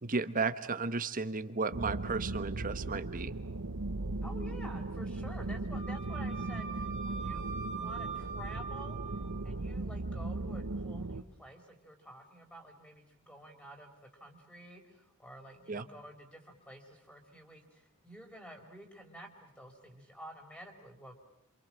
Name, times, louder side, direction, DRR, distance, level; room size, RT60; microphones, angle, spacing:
voice 1, 0.0-3.3 15.7-15.8, right 4 dB, 40° right, 12 dB, 1.2 m, -34 dB
sound 1, 1.7-11.2, right 2 dB, 85° right, 1.0 m, -37 dB
voice 2, 4.2-9.0 9.4-21.2, right 1 dB, 5° left, 3 dB, 4.4 m, -51 dB
Wind instrument woodwind instrument, 5.7-9.4, right 5 dB, 25° left, 4.4 m, -42 dB
27.5 x 27.0 x 7.5 m, 0.77 s
head